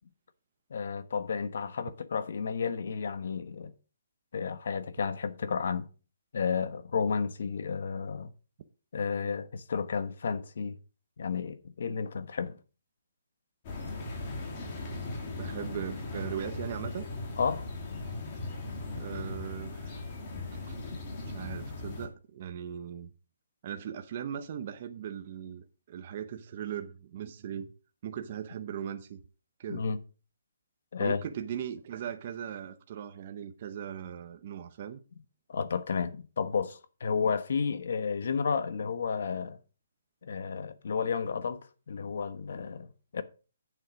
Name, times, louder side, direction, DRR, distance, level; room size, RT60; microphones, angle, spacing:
voice 1, 0.7-3.7 4.3-5.9 6.3-8.3 8.9-10.8 11.2-12.6 17.4-17.7 20.3-20.4 29.7-30.0 30.9-31.2 35.5-39.6 40.2-41.6 41.9-43.2, left 5 dB, 55° left, 1.1 m, -32 dB
sound 1, 13.6-22.1, left 2 dB, 25° left, 2.5 m, -38 dB
voice 2, 15.4-17.1 18.9-20.0 20.7-20.8 21.3-23.1 23.6-27.7 28.0-29.2 29.6-29.8 31.0-35.0, right 9 dB, 35° right, 0.7 m, -39 dB
8.9 x 7.2 x 5.0 m
hypercardioid pair, 175°, 0 cm